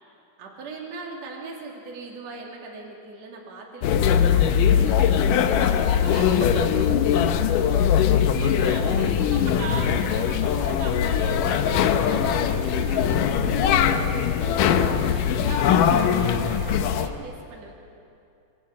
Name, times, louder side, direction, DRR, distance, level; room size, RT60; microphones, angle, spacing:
voice 1, 0.4-7.6 8.0-9.1 10.0-10.8 11.5-11.9 12.2-17.7, right 3 dB, 45° right, -2 dB, 3.8 m, -40 dB
sound 1, 3.8-17.1, left 8 dB, 70° left, 2.4 m, -21 dB
voice 2, 8.3-12.3 12.6-12.8, right 3 dB, 75° right, 2 dB, 5.6 m, -38 dB
27.0 x 22.5 x 8.8 m, 2.6 s
omnidirectional pair, 4.3 m